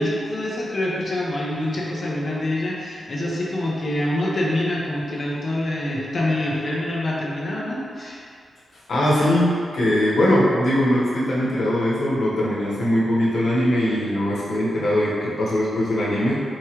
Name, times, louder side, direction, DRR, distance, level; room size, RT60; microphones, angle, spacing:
voice 1, 0.0-8.2 14.1-14.2, left 1 dB, 40° left, -5 dB, 0.8 m, -25 dB
voice 2, 8.9-16.4, left 1 dB, 85° left, -7 dB, 1.1 m, -21 dB
4.7 x 3.1 x 3.0 m, 2.3 s
wide cardioid pair, 135°, 0 cm